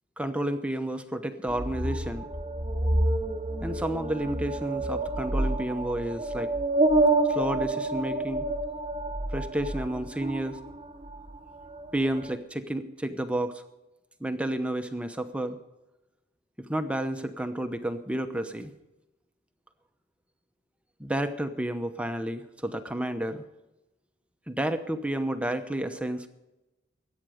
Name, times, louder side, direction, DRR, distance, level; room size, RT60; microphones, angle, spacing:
voice 1, 0.2-2.3 3.6-6.5 7.3-8.5 9.3-10.6 11.9-13.6 14.2-15.6 16.7-18.7 21.0-23.4 24.5-26.3, right 1 dB, 5° right, 7 dB, 0.8 m, -31 dB
sound 1, 1.5-11.4 11.7-12.4, right 2 dB, 25° right, 1.2 m, -28 dB
21.5 x 9.1 x 5.0 m, 1.0 s
head